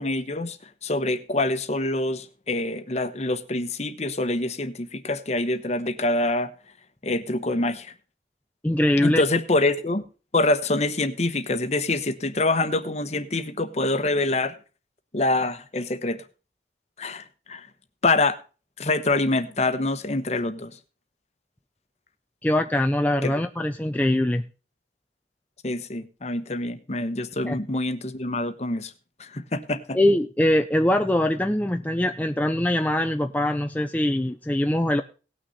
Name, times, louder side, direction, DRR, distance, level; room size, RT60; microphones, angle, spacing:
voice 1, 0.0-6.5 7.0-7.9 9.0-10.0 10.3-14.5 15.1-16.2 17.0-17.7 18.0-18.4 18.8-20.7 23.2-23.4 25.6-28.9 29.2-30.0, left 2 dB, 40° left, 1.0 m, -25 dB
voice 2, 8.6-9.2 22.4-24.4 27.4-27.6 29.9-35.0, left 1 dB, 10° left, 0.5 m, -22 dB
18.5 x 6.4 x 4.1 m
head